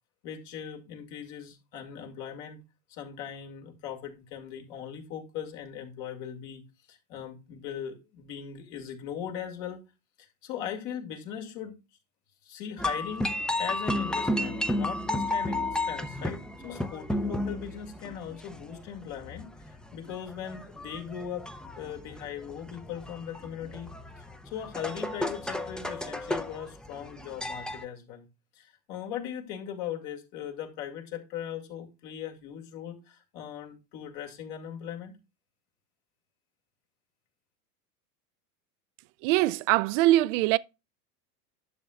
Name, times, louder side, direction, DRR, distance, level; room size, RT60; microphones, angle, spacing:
voice 1, 0.2-2.6 2.9-6.6 6.9-9.8 10.2-11.8 12.4-15.6 15.9-21.5 21.8-23.9 24.2-28.3 28.5-35.2, left 9 dB, 60° left, 2.4 m, -39 dB
sound 1, 12.8-27.8, left 1 dB, ahead, 0.5 m, -33 dB
voice 2, 39.2-40.6, right 16 dB, 55° right, 0.5 m, -22 dB
11.5 x 6.6 x 2.4 m
hypercardioid pair, 105°, 45 cm